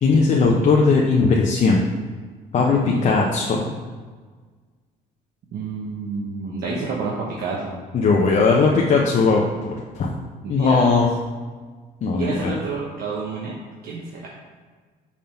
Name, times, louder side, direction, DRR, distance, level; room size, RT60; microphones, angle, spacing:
voice 1, 0.0-1.8 2.5-3.7 7.9-10.1 10.5-11.1 12.0-12.5, left 4 dB, 45° left, -1 dB, 0.7 m, -18 dB
voice 2, 2.6-3.1 5.5-7.8 10.4-10.9 12.1-13.5 13.8-14.2, right 4 dB, 65° right, -3 dB, 1.0 m, -29 dB
5.6 x 3.6 x 5.7 m, 1.5 s
cardioid pair, 110°, 17 cm